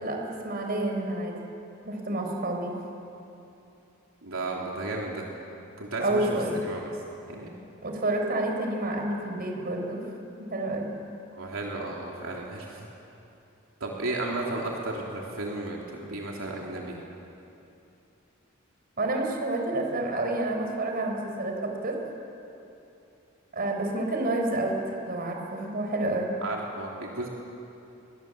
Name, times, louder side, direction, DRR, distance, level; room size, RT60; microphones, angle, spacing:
voice 1, 0.0-1.4 1.8-2.8 6.0-6.6 7.8-10.0 10.4-10.9 19.0-22.0 23.5-26.4, right 2 dB, 45° right, 2 dB, 4.4 m, -29 dB
voice 2, 4.2-5.2 5.8-6.4 6.7-6.8 7.3-7.5 11.3-12.9 13.8-17.0 26.4-27.3, right 2 dB, 75° right, -2 dB, 3.3 m, -33 dB
29.5 x 22.5 x 7.9 m, 2.9 s
head